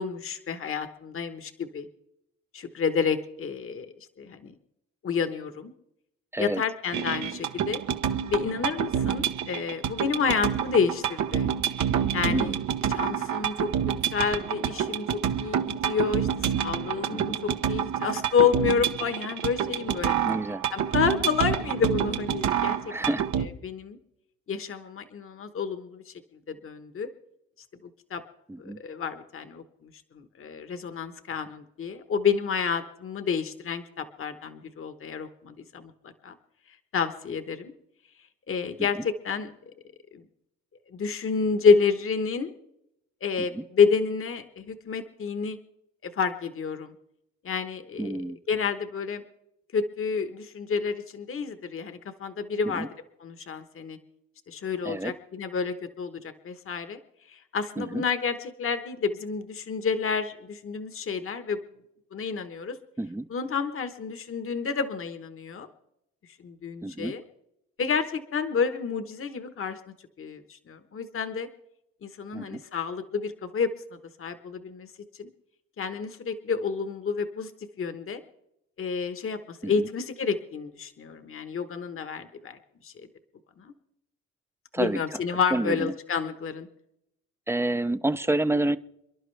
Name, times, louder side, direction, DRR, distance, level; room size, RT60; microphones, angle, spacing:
voice 1, 0.0-1.9 2.5-4.5 5.0-5.7 6.4-7.8 8.3-11.5 12.1-12.5 12.9-20.1 20.7-22.8 23.0-24.0 24.5-26.1 26.5-27.1 28.1-28.2 28.6-29.9 30.1-35.9 36.2-36.3 36.9-37.7 38.5-39.5 40.1-40.2 40.9-42.5 43.2-45.6 46.0-46.9 47.4-48.2 48.5-49.2 49.7-52.9 53.2-54.0 54.5-57.0 57.3-61.6 62.1-62.8 63.3-65.7 66.4-67.2 67.8-69.8 70.2-71.5 72.0-74.9 75.2-75.3 75.8-77.5 77.8-78.2 78.8-82.6 82.8-82.9 83.6-83.7 84.8-86.7, left 6 dB, 45° left, 9 dB, 1.2 m, -29 dB
sound 1, 6.9-23.5, right 9 dB, 70° right, 1.0 m, -28 dB
voice 2, 12.2-12.6 17.1-17.4 20.2-20.6 22.9-23.3 28.5-28.8 43.5-43.6 48.0-48.4 52.6-52.9 54.8-55.1 57.8-58.0 63.0-63.3 66.8-67.1 72.3-72.6 79.6-79.9 84.7-85.0 85.5-85.9 87.5-88.8, right 1 dB, 10° right, 13 dB, 0.6 m, -29 dB
28.0 x 11.0 x 3.3 m, 0.81 s
cardioid pair, 90°, 30 cm